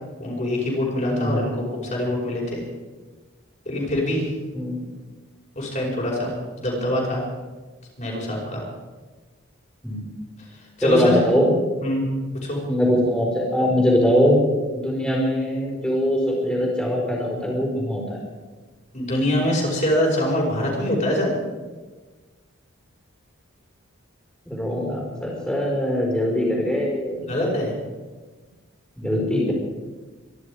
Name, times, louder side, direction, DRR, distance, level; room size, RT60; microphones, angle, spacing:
voice 1, 0.2-1.6 1.9-2.6 3.7-4.3 5.6-7.2 8.0-8.6 10.8-11.2 11.8-12.1 12.4-12.6 18.9-21.3 27.3-27.7, left 1 dB, 35° left, -3 dB, 5.4 m, -24 dB
voice 2, 1.1-1.5 4.5-4.8 9.8-10.0 10.8-11.5 12.7-14.4 14.7-18.0 24.4-27.3 29.0-29.5, equal, 5° left, -2 dB, 4.6 m, -22 dB
25.0 x 11.5 x 5.0 m, 1.3 s
head